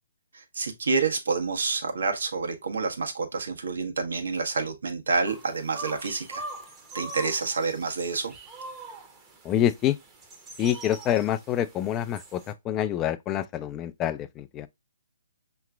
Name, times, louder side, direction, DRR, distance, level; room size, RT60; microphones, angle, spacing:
voice 1, 0.3-6.4 6.9-8.3, right 4 dB, 75° right, 1.2 m, -28 dB
sound 1, 5.3-12.5, right 2 dB, 15° right, 0.8 m, -42 dB
voice 2, 9.4-10.0 10.6-14.7, left 11 dB, 20° left, 0.4 m, -27 dB
5.7 x 3.0 x 2.4 m
hypercardioid pair, 140°, 0 cm